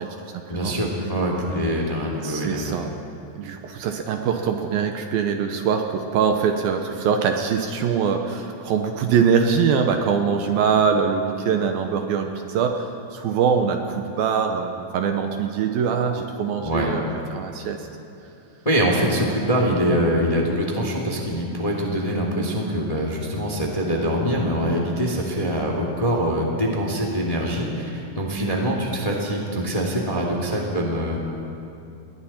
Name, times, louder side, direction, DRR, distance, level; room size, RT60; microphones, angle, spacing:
voice 1, 0.5-2.8 16.6-16.9 18.6-31.2, equal, 10° left, -1 dB, 1.7 m, -24 dB
voice 2, 2.2-2.9 3.3-17.9, right 6 dB, 75° right, 4 dB, 2.5 m, -23 dB
29.5 x 21.5 x 4.4 m, 2.8 s
omnidirectional pair, 4.8 m